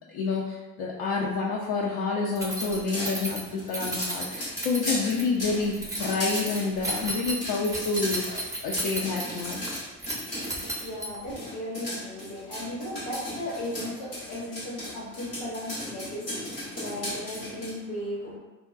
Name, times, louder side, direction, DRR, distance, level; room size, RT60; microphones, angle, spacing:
voice 1, 0.1-9.6, left 4 dB, 50° left, -3 dB, 0.5 m, -28 dB
Keys jangling, 2.4-11.4, right 1 dB, 5° right, 0.6 m, -34 dB
sound 1, 2.6-10.9 11.3-17.7, left 1 dB, 90° left, 0.9 m, -36 dB
voice 2, 10.2-18.4, left 1 dB, 70° left, -6 dB, 1.3 m, -36 dB
3.6 x 2.1 x 2.5 m, 1.2 s
figure-of-eight pair, 45°, 47 cm